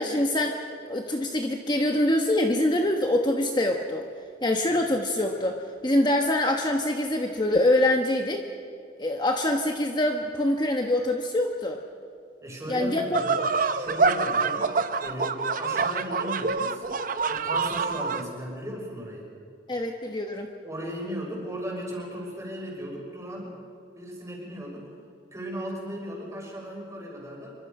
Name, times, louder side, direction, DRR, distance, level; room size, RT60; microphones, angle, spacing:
voice 1, 0.0-4.1 4.4-8.5 9.0-11.8 12.7-13.2 19.7-20.5, left 1 dB, 25° left, 3 dB, 1.2 m, -25 dB
voice 2, 12.4-14.7 15.0-16.9 17.2-19.3 20.6-23.5 23.9-24.9 25.3-27.5, equal, 15° right, -2 dB, 6.0 m, -36 dB
sound 1, 13.1-18.2, right 4 dB, 50° right, 0.9 m, -26 dB
26.0 x 24.5 x 5.5 m, 2.4 s
head